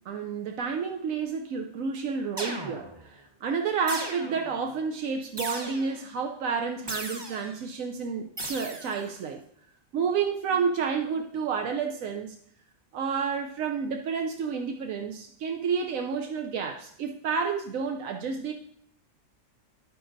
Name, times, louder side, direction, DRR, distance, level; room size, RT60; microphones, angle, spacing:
voice 1, 0.0-9.4 9.9-12.4 12.9-18.5, right 6 dB, 85° right, 3 dB, 1.1 m, -30 dB
sound 1, 2.4-3.1 3.9-4.6 5.4-6.1 6.9-7.6 8.4-9.1, right 1 dB, 25° right, 0.8 m, -37 dB
11.0 x 9.3 x 2.6 m, 0.66 s
omnidirectional pair, 1.4 m